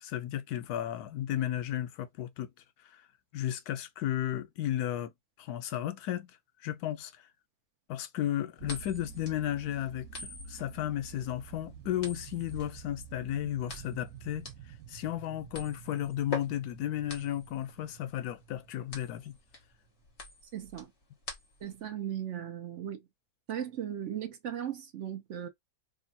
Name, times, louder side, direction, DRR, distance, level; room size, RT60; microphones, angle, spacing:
voice 1, 0.0-2.5 3.3-5.1 5.4-6.3 6.6-7.1 7.9-14.5 14.9-19.3, left 12 dB, 90° left, 1.1 m, -34 dB
sound 1, 8.6-21.8, left 3 dB, 50° left, 1.5 m, -45 dB
sound 2, 8.6-20.0, right 9 dB, 85° right, 1.1 m, -50 dB
voice 2, 20.5-20.9 21.6-23.1 23.5-25.5, right 10 dB, 60° right, 0.9 m, -37 dB
3.3 x 2.2 x 4.0 m
omnidirectional pair, 1.6 m